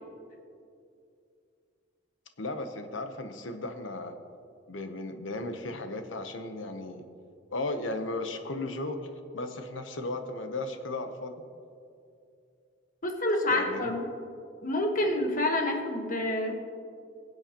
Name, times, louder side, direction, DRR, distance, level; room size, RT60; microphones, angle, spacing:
voice 1, 2.4-4.2 4.7-7.0 7.5-9.0 9.3-11.3 13.5-13.9, left 2 dB, 85° left, 7 dB, 0.9 m, -35 dB
voice 2, 13.0-14.0 14.6-16.6, left 1 dB, 45° left, 3 dB, 1.2 m, -28 dB
21.5 x 7.8 x 2.9 m, 2.5 s
head